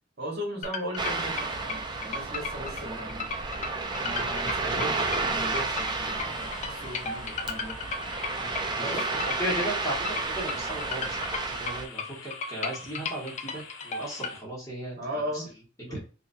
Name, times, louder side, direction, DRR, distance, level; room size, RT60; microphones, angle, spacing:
voice 1, 0.2-7.8 8.7-9.0 15.0-15.5 15.8-16.0, equal, 50° right, -4 dB, 1.9 m, -37 dB
sound 1, 0.6-14.3, left 4 dB, 35° left, 0.4 m, -35 dB
Ocean, 1.0-11.9, right 3 dB, 20° right, 0.4 m, -32 dB
sound 2, 6.3-14.4, left 4 dB, 70° left, 0.8 m, -47 dB
voice 2, 9.4-11.3 11.6-15.0 15.3-15.4 15.9-16.0, right 1 dB, 15° left, -5 dB, 1.4 m, -35 dB
3.9 x 2.7 x 2.6 m, 0.35 s
head